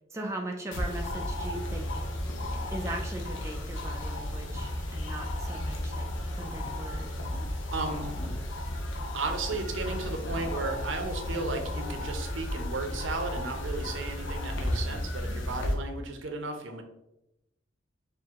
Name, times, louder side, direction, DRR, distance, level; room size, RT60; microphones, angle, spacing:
voice 1, 0.1-1.9 2.7-6.1 6.3-7.1, right 1 dB, 15° right, 1 dB, 0.4 m, -39 dB
sound 1, 0.7-15.7, left 1 dB, 75° left, 0.7 m, -33 dB
voice 2, 7.7-8.2 9.1-16.8, right 3 dB, 75° right, 4 dB, 0.7 m, -34 dB
4.5 x 2.6 x 3.6 m, 0.88 s
head